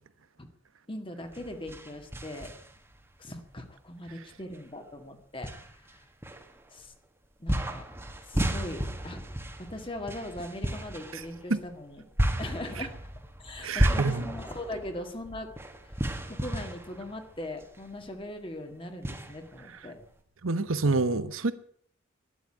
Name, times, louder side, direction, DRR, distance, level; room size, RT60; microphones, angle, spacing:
voice 1, 0.9-2.5 3.2-5.5 5.9-6.0 6.7-6.9 7.4-7.9 8.2-9.2 9.6-12.0 12.4-12.9 13.4-15.5 15.8-16.0 16.3-20.0 20.8-21.0, left 1 dB, 25° left, 1.9 m, -40 dB
sound 1, 1.2-3.0 3.5-3.6 4.5-4.6 5.4-6.9 7.5-17.9 18.2-18.3 19.0-20.1, equal, 10° right, 1.6 m, -33 dB
voice 2, 13.6-14.3 20.4-21.5, right 3 dB, 90° right, 1.1 m, -27 dB
12.5 x 11.0 x 9.8 m
head